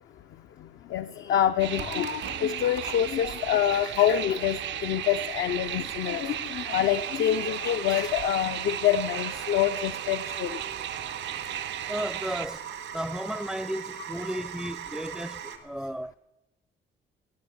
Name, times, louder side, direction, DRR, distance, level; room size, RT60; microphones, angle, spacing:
voice 1, 0.9-10.6, left 10 dB, 70° left, 0.5 m, -26 dB
sound 1, 1.6-12.5, right 11 dB, 65° right, 0.5 m, -35 dB
sound 2, 1.8-15.6, right 8 dB, 85° right, 1.8 m, -41 dB
voice 2, 11.9-12.6 12.9-16.1, equal, ahead, 0.4 m, -34 dB
17.0 x 7.8 x 7.8 m
cardioid pair, 90°, 20 cm